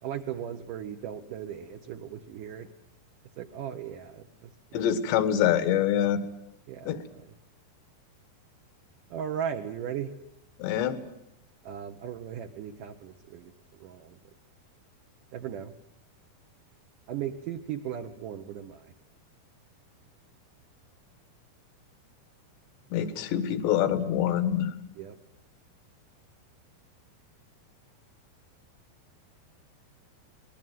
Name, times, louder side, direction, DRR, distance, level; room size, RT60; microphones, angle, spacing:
voice 1, 0.0-2.7 3.4-4.8 6.7-7.3 9.1-10.1 11.6-14.2 15.3-15.7 17.1-18.9 25.0-25.2, right 9 dB, 70° right, 4 dB, 2.2 m, -37 dB
voice 2, 4.7-6.2 6.9-7.0 10.6-11.0 22.9-24.7, left 10 dB, 85° left, 11 dB, 3.7 m, -25 dB
24.0 x 20.0 x 9.3 m, 0.80 s
omnidirectional pair, 4.9 m